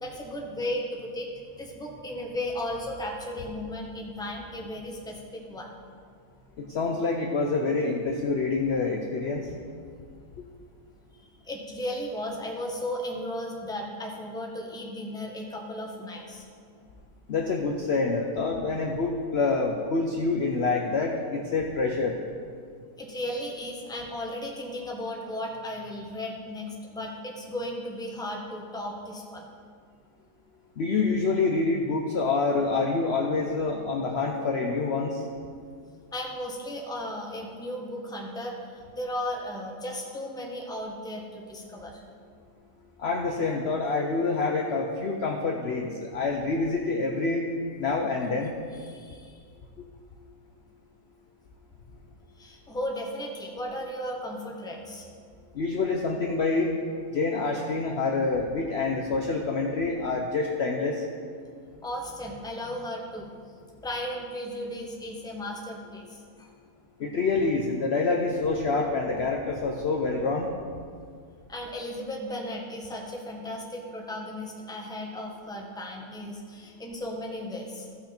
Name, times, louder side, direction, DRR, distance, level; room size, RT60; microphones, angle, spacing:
voice 1, 0.0-1.3 1.6-5.7 11.1-16.5 23.0-29.5 36.1-42.0 48.8-49.4 52.4-55.1 61.8-63.3 63.8-66.5 71.5-77.9, left 1 dB, 5° left, -1 dB, 1.0 m, -35 dB
voice 2, 6.6-9.5 17.3-22.2 30.8-35.2 43.0-47.4 47.8-48.5 55.5-56.7 57.1-61.0 67.0-70.5, left 3 dB, 55° left, 1 dB, 0.8 m, -27 dB
15.0 x 5.9 x 4.4 m, 2.1 s
omnidirectional pair, 1.7 m